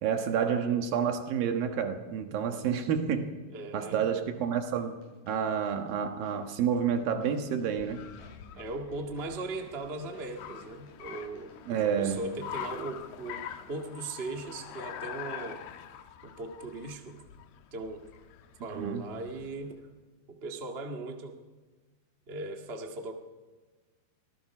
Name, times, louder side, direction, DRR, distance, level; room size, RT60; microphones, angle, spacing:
voice 1, 0.0-3.3 3.7-5.0 5.3-8.0 11.7-12.2 18.7-19.1, right 7 dB, 70° right, 5 dB, 3.1 m, -29 dB
voice 2, 3.5-4.0 8.6-15.6 16.2-17.2 17.7-18.1 18.6-19.8 20.3-21.4 22.3-23.1, right 2 dB, 30° right, 2 dB, 1.1 m, -38 dB
sound 1, 4.8-12.6, left 1 dB, 50° left, 9.5 m, -56 dB
Car, 6.8-19.7, left 10 dB, 85° left, 3.0 m, -45 dB
25.5 x 18.5 x 6.0 m, 1.3 s
omnidirectional pair, 4.4 m